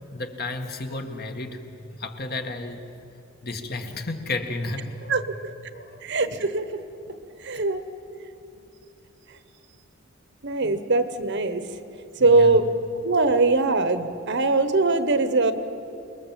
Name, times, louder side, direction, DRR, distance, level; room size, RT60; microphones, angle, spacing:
voice 1, 0.1-1.6 2.0-2.9 3.4-5.2 5.7-5.9 10.6-10.8 12.3-12.5, left 2 dB, 50° left, 5 dB, 1.9 m, -32 dB
voice 2, 5.1-5.5 6.0-6.8 7.1-7.8 10.4-11.6 12.2-12.7 13.0-15.5, right 3 dB, 55° right, 11 dB, 1.2 m, -22 dB
28.5 x 21.0 x 7.6 m, 2.7 s
head